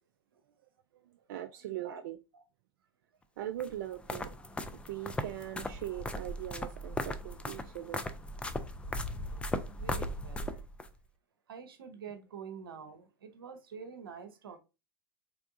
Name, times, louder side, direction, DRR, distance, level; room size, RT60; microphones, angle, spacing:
voice 1, 1.3-2.2 3.4-4.3 4.7-8.0, right 13 dB, 60° right, 0.4 m, -40 dB
sound 1, 3.6-10.9, left 1 dB, 10° left, 0.4 m, -38 dB
voice 2, 9.7-10.6 11.5-14.6, right 6 dB, 75° right, 0.7 m, -47 dB
3.5 x 3.4 x 2.4 m
figure-of-eight pair, 90°, 12 cm